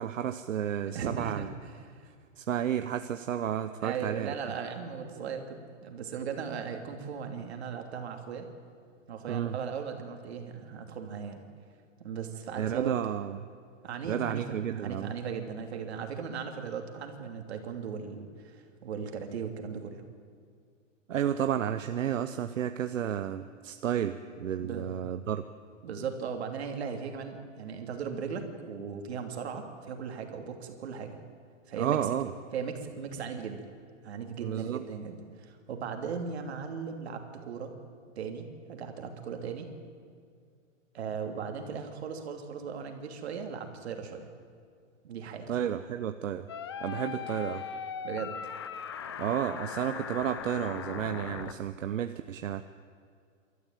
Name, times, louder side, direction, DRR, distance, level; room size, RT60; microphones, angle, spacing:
voice 1, 0.0-1.5 2.4-4.3 9.3-9.6 12.6-13.4 14.1-15.1 21.1-25.4 31.7-32.3 34.4-34.8 45.5-46.5 46.8-47.6 49.2-52.6, right 9 dB, 75° right, 9 dB, 1.0 m, -31 dB
voice 2, 0.8-2.1 3.8-8.5 9.1-11.4 12.0-13.1 13.8-20.0 24.6-24.9 25.8-31.2 31.7-32.0 32.5-33.7 34.0-37.7 38.2-39.7 40.9-44.3 45.0-45.5 46.9-47.1 48.0-48.3, right 6 dB, 55° right, 5 dB, 2.9 m, -37 dB
sound 1, 46.5-51.5, left 7 dB, 20° left, 0.5 m, -39 dB
28.0 x 13.5 x 9.1 m, 2.2 s
hypercardioid pair, 170°, 39 cm